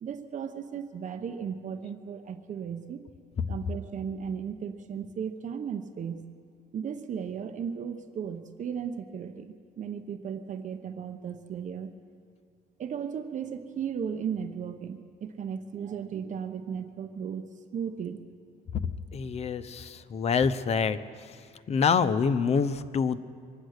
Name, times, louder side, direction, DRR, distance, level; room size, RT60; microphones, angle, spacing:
voice 1, 0.0-3.0 3.5-6.3 6.7-11.9 12.8-18.2, right 7 dB, 45° right, 8 dB, 0.9 m, -36 dB
voice 2, 19.1-21.0 21.7-23.2, left 6 dB, 40° left, 12 dB, 0.7 m, -26 dB
24.5 x 9.0 x 6.6 m, 2.2 s
cardioid pair, 110°, 17 cm